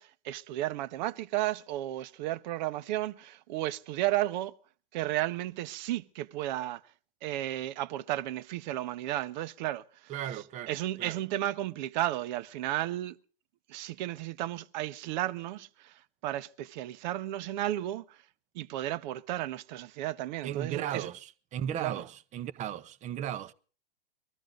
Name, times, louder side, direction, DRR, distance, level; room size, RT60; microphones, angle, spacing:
voice 1, 0.0-4.5 4.9-6.8 7.2-13.2 13.7-18.2 18.5-21.1 21.8-22.1, right 14 dB, 50° right, 0.9 m, -33 dB
voice 2, 10.1-11.2 20.4-23.5, right 10 dB, 25° right, 0.8 m, -36 dB
20.5 x 13.5 x 3.8 m
hypercardioid pair, 120°, 30 cm